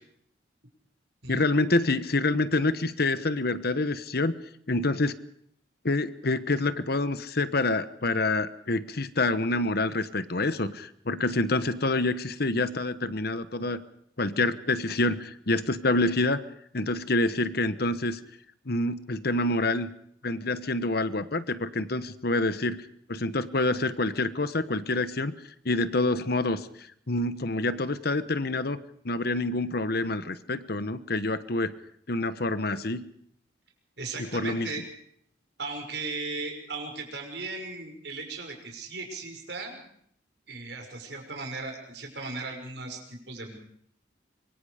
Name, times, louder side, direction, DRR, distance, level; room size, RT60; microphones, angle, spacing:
voice 1, 1.3-4.4 4.7-5.2 5.8-13.8 14.2-16.4 16.7-18.2 18.7-19.9 20.2-22.8 23.1-25.3 25.6-28.8 29.0-31.7 32.1-33.0 34.2-34.7, left 2 dB, 55° left, 13 dB, 1.1 m, -27 dB
voice 2, 34.0-34.8 35.6-39.8 40.5-43.6, right 3 dB, 60° right, 3 dB, 6.2 m, -37 dB
25.5 x 23.5 x 5.1 m, 0.67 s
head